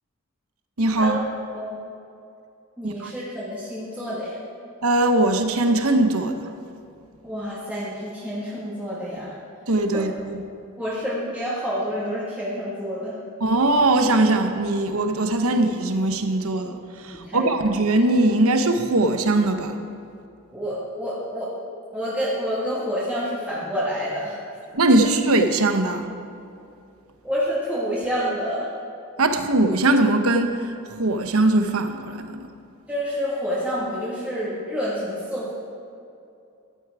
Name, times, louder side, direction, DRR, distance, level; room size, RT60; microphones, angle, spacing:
voice 1, 0.8-1.2 2.8-3.1 4.8-6.4 9.7-10.4 13.4-19.8 24.7-26.1 29.2-32.4, right 2 dB, 80° right, 6 dB, 1.0 m, -21 dB
voice 2, 2.8-4.4 7.2-9.3 9.9-10.0 10.8-13.2 17.1-17.7 20.5-21.5 21.9-24.4 27.2-28.7 32.9-35.5, equal, 5° right, -9 dB, 1.9 m, -28 dB
14.0 x 11.5 x 4.8 m, 2.6 s
head